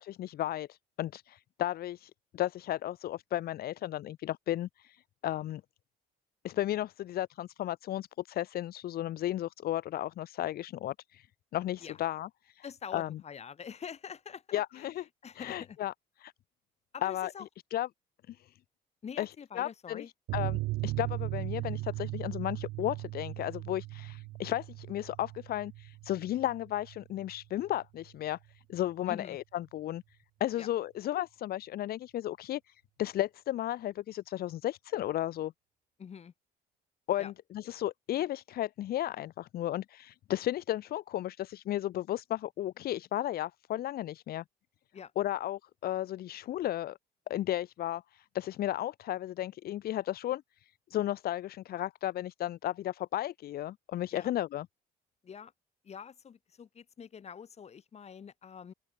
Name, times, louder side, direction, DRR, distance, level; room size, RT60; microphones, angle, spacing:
voice 1, 0.0-5.6 6.4-11.3 11.5-12.6 12.9-13.2 14.5-15.0 15.4-15.9 16.2-16.3 17.0-17.3 17.7-17.9 18.3-18.4 19.2-19.3 19.6-20.0 20.3-28.4 28.7-30.0 30.4-32.7 33.0-35.5 37.1-44.4 45.2-47.0 47.3-50.4 50.9-54.7, left 13 dB, 65° left, 1.6 m, -34 dB
voice 2, 12.6-14.9 15.2-15.8 16.9-17.4 19.0-20.1 29.1-29.4 30.6-30.7 36.0-36.3 37.2-37.3 44.9-45.1 54.1-54.3 55.2-55.5 55.8-58.7, left 7 dB, 40° left, 4.6 m, -45 dB
sound 1, 20.3-27.4 27.6-27.8 28.1-28.2, right 20 dB, 90° right, 2.3 m, -38 dB
open air
cardioid pair, 110°, 17 cm